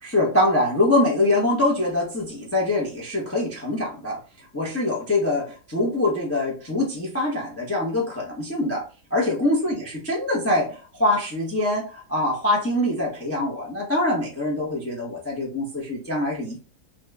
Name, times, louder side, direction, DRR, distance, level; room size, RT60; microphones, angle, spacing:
voice 1, 0.0-16.6, left 1 dB, 20° left, -3 dB, 0.3 m, -24 dB
2.9 x 2.4 x 3.1 m, 0.35 s
omnidirectional pair, 1.8 m